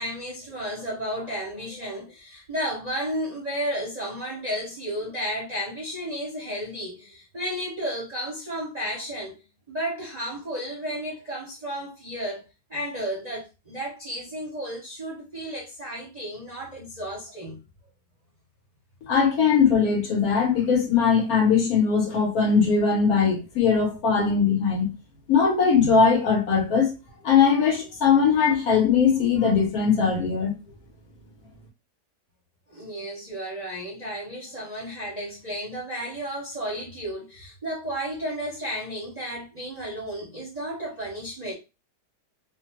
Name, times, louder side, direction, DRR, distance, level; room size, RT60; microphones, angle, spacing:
voice 1, 0.0-9.4 9.7-12.4 12.7-17.6 32.7-41.5, equal, 35° right, 0.7 m, -33 dB
voice 2, 19.1-24.9 25.3-26.9 27.2-30.5, left 6 dB, 65° left, 1.3 m, -20 dB
3.0 x 2.2 x 2.9 m
omnidirectional pair, 1.8 m